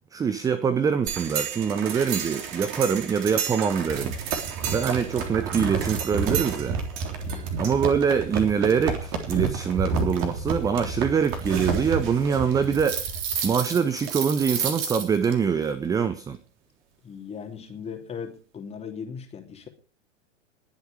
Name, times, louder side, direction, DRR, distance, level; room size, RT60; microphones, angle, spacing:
voice 1, 0.1-4.2 4.7-6.8 7.6-13.0 13.4-16.4, right 6 dB, 10° right, 0.7 m, -24 dB
sound 1, 1.1-15.3, right 6 dB, 35° right, 3.6 m, -30 dB
voice 2, 7.2-7.6 17.0-19.7, left 6 dB, 15° left, 3.1 m, -38 dB
21.5 x 7.9 x 5.0 m
figure-of-eight pair, 100°, 37 cm